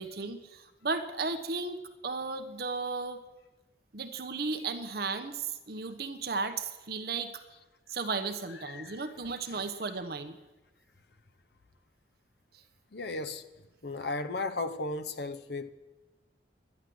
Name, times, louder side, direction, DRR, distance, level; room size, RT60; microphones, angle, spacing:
voice 1, 0.0-3.2 3.9-7.3 7.9-10.4, right 4 dB, 55° right, 1.0 m, -35 dB
voice 2, 8.5-9.7 12.9-13.4 13.8-15.7, left 3 dB, 65° left, 0.8 m, -36 dB
11.5 x 11.0 x 7.7 m
head